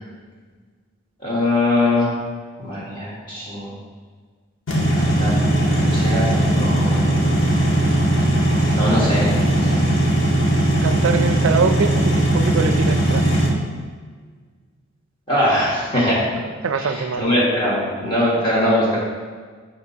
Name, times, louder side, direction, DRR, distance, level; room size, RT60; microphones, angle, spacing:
voice 1, 1.2-2.2 2.6-3.7 4.9-7.2 8.7-9.8 15.3-16.2 16.8-19.0, left 1 dB, 25° left, -6 dB, 1.3 m, -22 dB
sound 1, 4.7-13.5, right 1 dB, 70° left, 1.5 m, -18 dB
voice 2, 10.8-13.2 16.6-17.3, right 5 dB, 80° right, 9 dB, 0.4 m, -23 dB
12.0 x 4.1 x 2.8 m, 1.5 s
head